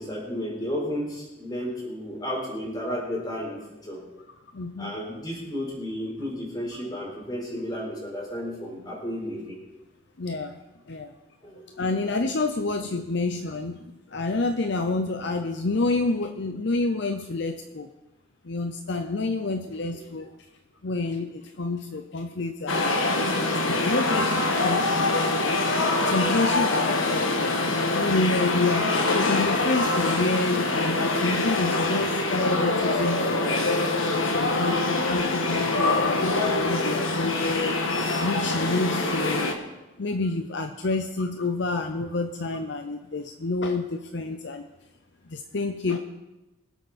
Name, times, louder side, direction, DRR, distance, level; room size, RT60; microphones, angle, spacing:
voice 1, 0.0-4.0 4.8-9.5 11.4-11.6, equal, 20° left, -3 dB, 4.2 m, -33 dB
voice 2, 4.5-5.0 10.2-10.6 10.9-11.1 11.6-17.9 18.4-20.4 20.8-27.5 27.9-33.8 34.2-37.7 38.0-39.6 40.0-44.7 45.3-46.0, left 3 dB, 55° left, 6 dB, 0.7 m, -29 dB
sound 1, 22.7-39.5, left 2 dB, 75° left, 1.6 m, -24 dB
23.5 x 8.3 x 4.3 m, 1.1 s
head